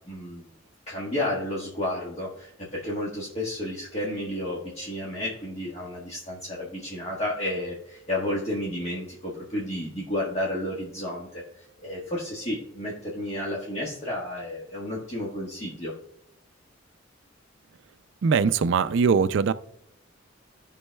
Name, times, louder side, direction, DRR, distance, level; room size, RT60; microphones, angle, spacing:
voice 1, 0.1-0.5 0.9-11.4 11.8-15.9, left 1 dB, 35° left, -5 dB, 1.4 m, -31 dB
voice 2, 18.2-19.5, right 5 dB, 65° right, 13 dB, 0.4 m, -21 dB
16.0 x 5.4 x 2.2 m, 0.74 s
head